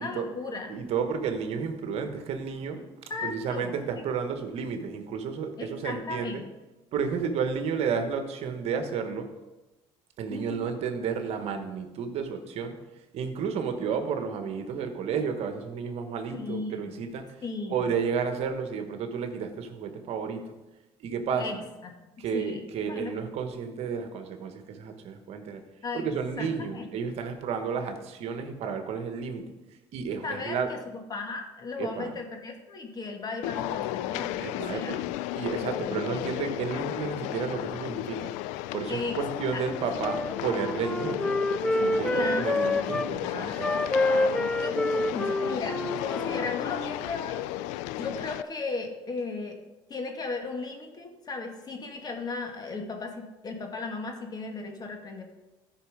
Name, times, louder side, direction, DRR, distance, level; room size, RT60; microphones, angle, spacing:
voice 1, 0.0-0.7 3.1-3.8 5.6-6.5 10.3-10.6 16.3-16.8 17.4-17.9 21.3-21.6 21.8-21.9 22.3-23.1 25.8-26.1 26.4-26.9 30.2-34.9 35.9-36.4 38.9-39.2 39.5-39.6 42.1-44.3 44.6-47.5 48.0-49.6 49.9-55.2, left 3 dB, 35° left, 3 dB, 2.0 m, -36 dB
voice 2, 0.7-2.8 3.2-6.4 6.9-9.3 10.2-12.8 13.1-17.3 17.7-20.4 21.0-21.6 22.2-25.6 25.9-29.4 29.9-30.7 31.8-32.1 34.4-35.1 35.3-38.3 38.7-41.4 41.7-43.7, right 6 dB, 60° right, 6 dB, 1.4 m, -32 dB
sound 1, 33.4-48.4, left 15 dB, 85° left, 0.4 m, -34 dB
Wind instrument woodwind instrument, 40.0-43.1 43.5-47.0, left 1 dB, 5° left, 0.5 m, -28 dB
13.5 x 5.7 x 5.1 m, 1.1 s
supercardioid pair, 95°, 12 cm